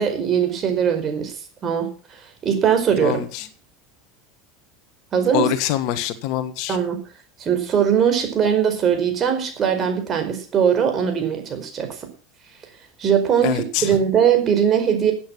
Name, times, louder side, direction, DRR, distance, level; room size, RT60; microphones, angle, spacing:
voice 1, 0.0-1.3 1.6-1.9 2.4-3.2 5.1-5.5 6.7-7.0 7.4-12.1 13.0-15.1, right 8 dB, 35° right, 6 dB, 4.8 m, -20 dB
voice 2, 3.0-3.4 5.3-6.8 13.4-13.9, left 12 dB, 55° left, 13 dB, 1.4 m, -24 dB
15.5 x 8.8 x 6.1 m, 0.38 s
figure-of-eight pair, 75°, 0 cm